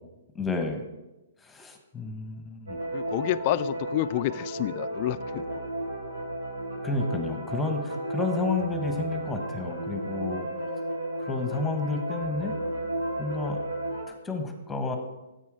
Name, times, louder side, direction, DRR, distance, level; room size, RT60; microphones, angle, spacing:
voice 1, 0.3-0.8 1.4-2.8 6.8-10.5 11.2-12.6 13.2-13.6 14.1-15.0, left 3 dB, 10° left, 5 dB, 1.1 m, -31 dB
sound 1, 2.7-14.0, right 1 dB, 90° right, 3.3 m, -33 dB
voice 2, 2.9-5.4, left 14 dB, 40° left, 15 dB, 0.4 m, -29 dB
9.7 x 8.4 x 4.8 m, 1.0 s
hypercardioid pair, 145°, 0 cm